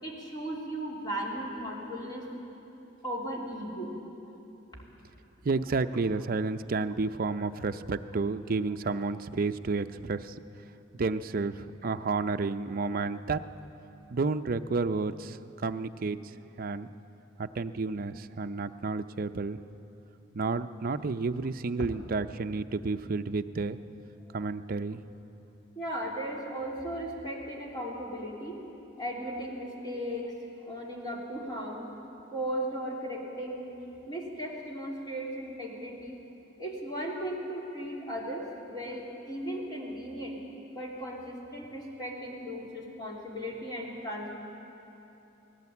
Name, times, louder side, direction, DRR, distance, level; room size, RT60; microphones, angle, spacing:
voice 1, 0.0-2.3 3.0-3.9 25.7-28.6 29.0-30.3 30.6-31.9 32.3-33.7 34.1-36.2 36.6-40.4 40.7-44.3, equal, 20° left, -3 dB, 3.2 m, -36 dB
voice 2, 5.4-10.4 11.0-13.4 14.1-16.9 17.4-19.6 20.3-23.8 24.3-25.0, right 3 dB, 45° right, 9 dB, 0.5 m, -31 dB
19.5 x 16.5 x 8.4 m, 3.0 s
head